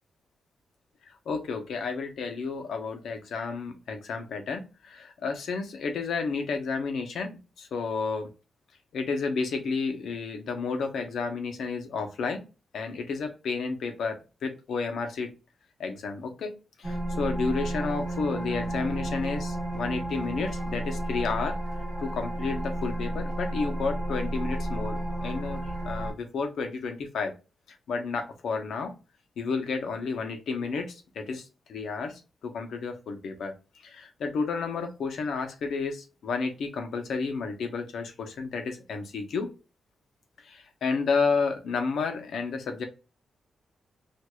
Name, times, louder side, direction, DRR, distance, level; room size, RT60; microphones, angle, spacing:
voice 1, 1.1-8.3 8.9-12.4 12.7-14.2 14.4-15.3 15.8-16.5 16.8-21.6 22.0-27.3 27.7-28.9 29.4-33.5 33.8-39.5 40.4-42.8, left 4 dB, 75° left, 5 dB, 0.8 m, -31 dB
sound 1, 16.8-26.1, right 1 dB, 15° left, 2.1 m, -32 dB
4.6 x 2.5 x 2.3 m, 0.31 s
wide cardioid pair, 180°, 0 cm